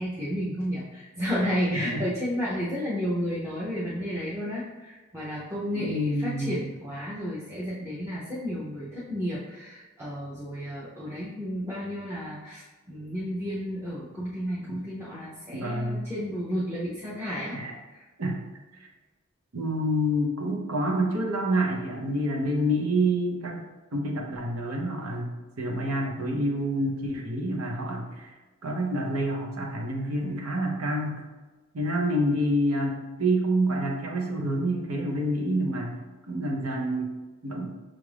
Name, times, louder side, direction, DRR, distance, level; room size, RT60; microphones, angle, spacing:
voice 1, 0.0-17.6 17.9-18.0, equal, 15° right, -9 dB, 0.6 m, -32 dB
voice 2, 1.4-2.1 5.7-6.5 14.7-14.8 15.5-16.1 17.5-17.7 18.2-18.4 19.5-23.7 23.9-28.3 28.6-31.2 31.7-36.0 36.3-37.1 37.4-37.7, right 1 dB, 90° right, 0 dB, 0.7 m, -28 dB
5.9 x 2.5 x 3.3 m, 1.2 s
head